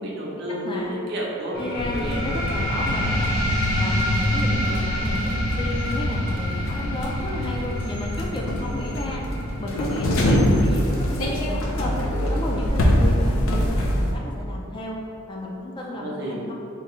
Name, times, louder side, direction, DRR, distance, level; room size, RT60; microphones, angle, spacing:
voice 1, 0.0-1.6 1.9-2.2 9.4-9.6 15.8-16.4, right 1 dB, 50° right, -5 dB, 0.7 m, -31 dB
voice 2, 0.6-1.0 1.6-3.4 3.8-9.2 9.6-12.0 12.3-15.0 15.3-16.5, left 1 dB, 20° left, -2 dB, 0.4 m, -32 dB
sound 1, 1.5-12.6, left 1 dB, 40° left, 1.0 m, -29 dB
sound 2, 1.7-14.1, equal, 75° left, 0.5 m, -24 dB
3.7 x 2.3 x 4.2 m, 2.7 s
head